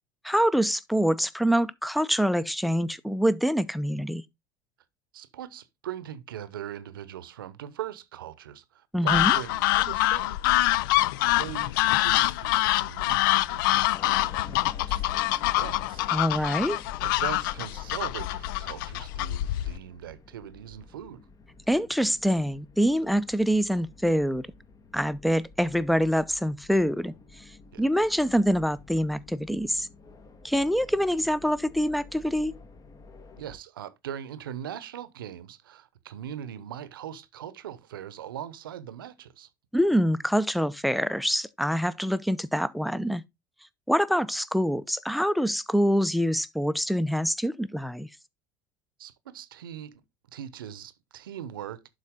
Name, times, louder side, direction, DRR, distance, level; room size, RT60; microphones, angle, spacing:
voice 1, 0.2-4.2 8.9-9.3 16.1-16.8 21.7-24.5 24.9-27.1 27.8-29.9 30.4-32.5 39.7-43.2 43.9-48.1, equal, ahead, 0.6 m, -25 dB
voice 2, 5.1-10.4 11.4-16.0 16.4-21.3 27.7-27.9 33.4-39.5 49.0-50.0 50.3-51.9, right 10 dB, 85° right, 0.8 m, -40 dB
sound 1, 9.1-19.8, left 16 dB, 70° left, 0.4 m, -25 dB
sound 2, 13.9-33.6, left 3 dB, 30° left, 1.2 m, -51 dB
11.5 x 4.0 x 3.6 m
hypercardioid pair, 75°, 11 cm